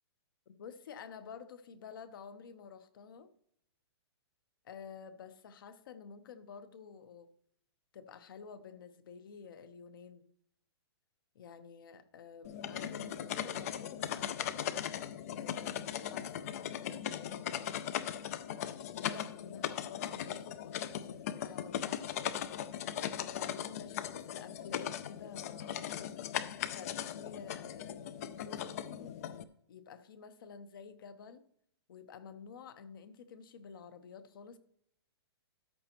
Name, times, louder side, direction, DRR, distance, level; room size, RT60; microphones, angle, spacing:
voice 1, 0.5-3.3 4.6-7.3 7.9-10.3 11.3-14.7 15.3-17.8 18.9-22.1 23.1-25.9 26.7-28.0 28.4-29.2 29.7-31.5 31.9-34.6, left 6 dB, 50° left, 0.9 m, -51 dB
sound 1, 12.4-29.4, left 10 dB, 35° left, 0.4 m, -39 dB
13.5 x 8.9 x 3.0 m
hypercardioid pair, 165°, 14 cm